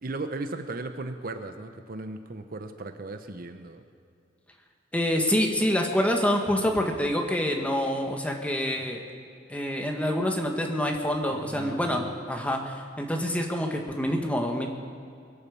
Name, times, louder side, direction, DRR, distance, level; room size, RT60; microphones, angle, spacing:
voice 1, 0.0-3.8 11.5-12.1, right 2 dB, 50° right, 8 dB, 0.8 m, -36 dB
voice 2, 4.9-9.0 9.5-14.7, equal, 10° left, 2 dB, 1.5 m, -26 dB
23.0 x 8.7 x 7.1 m, 2.5 s
head